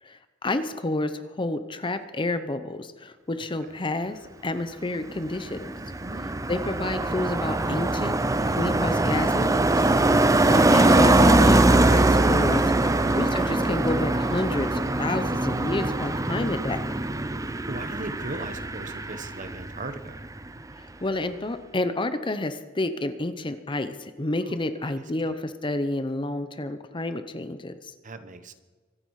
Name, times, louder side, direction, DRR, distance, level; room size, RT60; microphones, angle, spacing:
voice 1, 0.0-5.8 6.2-8.2 8.5-9.8 10.5-16.8 20.8-27.9, left 2 dB, 25° left, 10 dB, 0.8 m, -30 dB
Car passing by, 5.1-19.9 20.2-20.5, right 2 dB, 15° right, 0.6 m, -22 dB
voice 2, 6.0-6.5 15.8-16.2 17.7-20.1 24.8-25.0 28.0-28.5, right 2 dB, 40° right, 9 dB, 1.1 m, -38 dB
24.5 x 9.8 x 4.8 m, 1.4 s
head